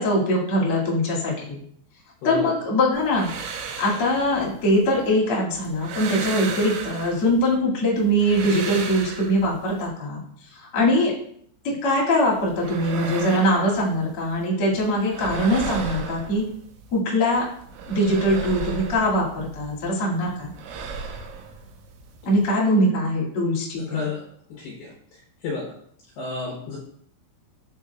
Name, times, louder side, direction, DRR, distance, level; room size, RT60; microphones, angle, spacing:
voice 1, 0.0-1.6 2.2-3.3 3.8-10.2 10.5-11.1 11.6-16.5 16.9-17.5 17.9-20.5 22.2-24.0, equal, 45° left, -5 dB, 1.8 m, -22 dB
voice 2, 2.2-2.5 23.8-24.2 24.5-25.7 26.2-26.8, left 4 dB, 75° left, -5 dB, 2.5 m, -32 dB
sound 1, 2.9-5.1 5.5-7.6 8.0-9.9 12.3-14.5 14.7-17.0 17.3-19.9 20.1-22.5, right 6 dB, 90° right, 3.5 m, -36 dB
9.5 x 4.4 x 2.3 m, 0.65 s
omnidirectional pair, 5.9 m